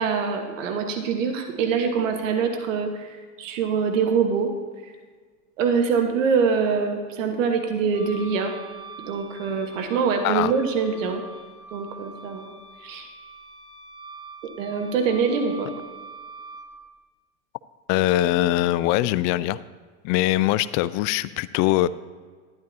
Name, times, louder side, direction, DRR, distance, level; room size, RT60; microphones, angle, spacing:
voice 1, 0.0-4.5 4.8-4.9 5.6-8.5 9.0-11.2 11.7-12.5 12.8-13.1 14.4-15.7, right 5 dB, 75° right, 4 dB, 1.4 m, -24 dB
Wind instrument woodwind instrument, 7.9-16.7, right 3 dB, 25° right, 3.3 m, -43 dB
voice 2, 17.9-19.6 20.0-21.9, left 15 dB, 50° left, 17 dB, 0.4 m, -22 dB
12.5 x 10.5 x 2.7 m, 1.5 s
hypercardioid pair, 90°, 39 cm